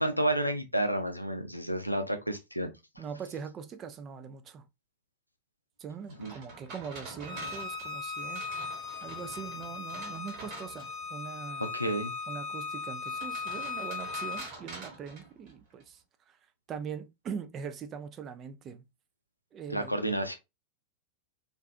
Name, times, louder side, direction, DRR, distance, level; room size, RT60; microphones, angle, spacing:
voice 1, 0.0-2.7 6.2-6.3 11.6-12.1 19.7-20.4, right 1 dB, 90° left, 0.4 m, -30 dB
voice 2, 3.0-4.6 5.8-8.7 9.0-11.7 12.3-16.0 16.3-16.4 16.7-18.8 19.5-20.0, right 7 dB, 30° right, 0.4 m, -42 dB
sound 1, 6.1-11.1 13.1-15.8, right 3 dB, 45° right, 1.3 m, -46 dB
Bowed string instrument, 7.2-14.5, left 4 dB, 30° left, 0.8 m, -38 dB
2.5 x 2.3 x 2.4 m
figure-of-eight pair, 90°, 0 cm